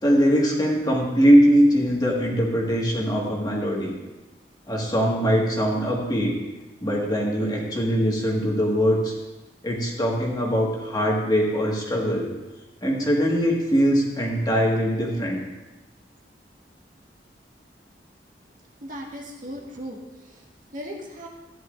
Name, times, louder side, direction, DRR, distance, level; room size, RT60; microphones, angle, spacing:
voice 1, 0.0-3.9 4.7-6.3 6.8-9.1 9.6-12.3 12.8-15.4, equal, 25° left, -2 dB, 1.8 m, -21 dB
voice 2, 18.8-20.4 20.7-21.3, equal, 50° right, -1 dB, 1.7 m, -37 dB
15.0 x 10.5 x 2.6 m, 1.1 s
head